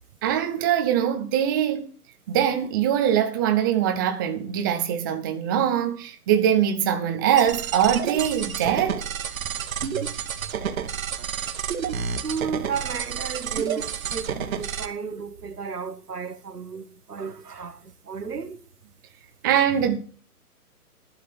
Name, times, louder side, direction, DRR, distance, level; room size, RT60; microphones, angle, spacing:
voice 1, 0.2-1.9 2.3-9.0 19.4-20.0, right 9 dB, 15° right, 0.5 m, -22 dB
sound 1, 7.4-14.9, right 7 dB, 60° right, 1.6 m, -30 dB
voice 2, 9.8-10.1 10.4-10.5 12.2-18.6, right 6 dB, 85° right, 1.5 m, -33 dB
11.0 x 6.4 x 7.2 m
figure-of-eight pair, 135°, 46 cm